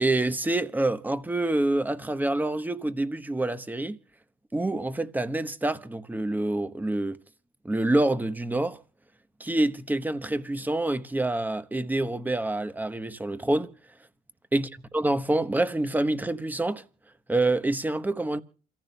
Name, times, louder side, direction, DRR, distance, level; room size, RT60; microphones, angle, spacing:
voice 1, 0.0-4.0 4.5-7.2 7.6-8.8 9.4-13.7 14.5-14.7 14.9-16.8 17.3-18.4, right 2 dB, 10° right, 1.0 m, -27 dB
29.0 x 15.0 x 2.3 m
cardioid pair, 110°, 17 cm